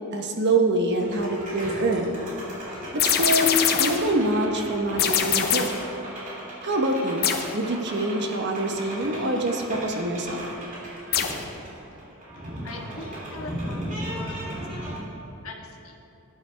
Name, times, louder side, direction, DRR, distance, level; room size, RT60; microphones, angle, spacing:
voice 1, 0.1-2.2 2.9-3.5 3.8-5.7 6.6-7.3 7.5-10.4, right 2 dB, 55° right, 2 dB, 1.1 m, -25 dB
sound 1, 0.9-15.0, right 1 dB, 40° right, 2.8 m, -37 dB
sound 2, 3.0-4.1 5.0-5.9 7.2-7.6 11.1-11.5, left 8 dB, 50° left, 0.8 m, -23 dB
voice 2, 12.6-14.4 14.7-14.9 15.4-16.0, left 2 dB, 90° left, 1 dB, 1.4 m, -41 dB
17.5 x 9.2 x 3.4 m, 3.0 s
head